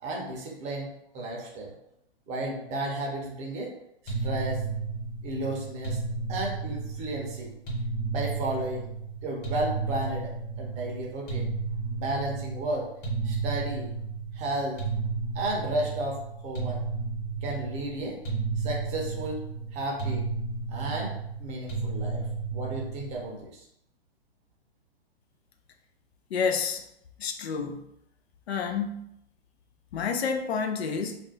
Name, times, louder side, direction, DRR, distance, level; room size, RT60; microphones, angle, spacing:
voice 1, 0.0-1.7 2.3-3.7 4.0-4.6 5.2-6.0 6.3-7.5 8.1-8.9 9.2-11.5 11.9-12.9 13.2-13.9 14.3-14.8 15.3-16.8 17.4-18.2 18.6-19.4 19.7-20.3 20.7-22.2 22.5-23.7, right 1 dB, 20° right, -1 dB, 0.6 m, -33 dB
sound 1, 4.1-23.4, right 4 dB, 35° left, 1.3 m, -33 dB
voice 2, 26.3-26.8 27.2-27.8 28.5-29.1 29.9-31.2, left 6 dB, 80° left, 6 dB, 0.5 m, -29 dB
2.5 x 2.1 x 3.8 m, 0.77 s
hypercardioid pair, 135°, 31 cm